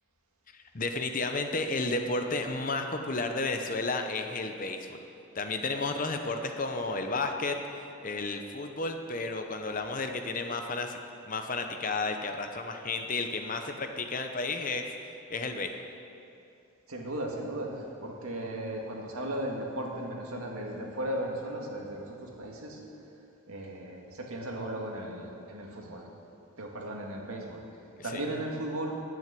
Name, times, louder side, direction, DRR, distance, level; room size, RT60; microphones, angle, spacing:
voice 1, 0.5-5.0 5.3-11.0 11.3-14.8 15.3-15.7 28.0-28.2, left 3 dB, 35° left, 6 dB, 0.8 m, -32 dB
voice 2, 16.9-22.8 23.5-26.1 26.6-27.6 28.0-29.0, right 1 dB, 80° right, 0 dB, 1.9 m, -36 dB
10.5 x 9.4 x 7.6 m, 2.8 s
head